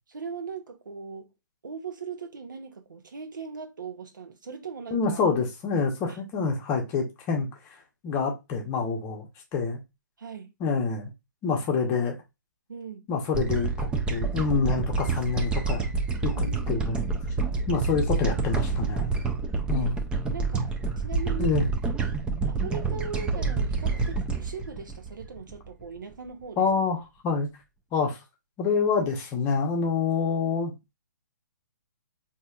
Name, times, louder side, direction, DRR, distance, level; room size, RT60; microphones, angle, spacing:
voice 1, 0.1-1.3 1.6-5.2 6.1-6.2 10.2-10.5 12.7-13.0 16.4-16.9 19.7-19.9 20.3-21.5 22.5-26.7, right 5 dB, 80° right, 0.8 m, -39 dB
voice 2, 4.9-9.8 10.6-11.1 11.4-12.2 13.1-15.9 16.2-17.1 17.7-19.1 19.7-20.0 21.4-21.7 26.6-27.0 27.2-27.5 27.9-28.2 28.6-30.7, left 5 dB, 20° left, 0.8 m, -27 dB
sound 1, 13.3-25.8, right 4 dB, 10° right, 0.4 m, -28 dB
4.1 x 2.8 x 2.3 m
hypercardioid pair, 145°, 10 cm